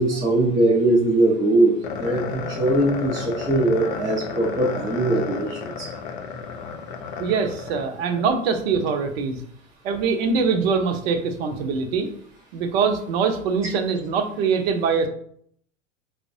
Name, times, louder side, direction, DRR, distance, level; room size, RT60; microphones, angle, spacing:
voice 1, 0.0-5.9, right 2 dB, 10° right, -3 dB, 0.4 m, -21 dB
sound 1, 1.8-8.3, left 5 dB, 50° left, 0.6 m, -33 dB
voice 2, 7.2-9.4 9.8-12.1 12.5-15.1, right 5 dB, 55° right, 7 dB, 0.6 m, -23 dB
4.4 x 2.1 x 2.6 m, 0.64 s
figure-of-eight pair, 85°, 37 cm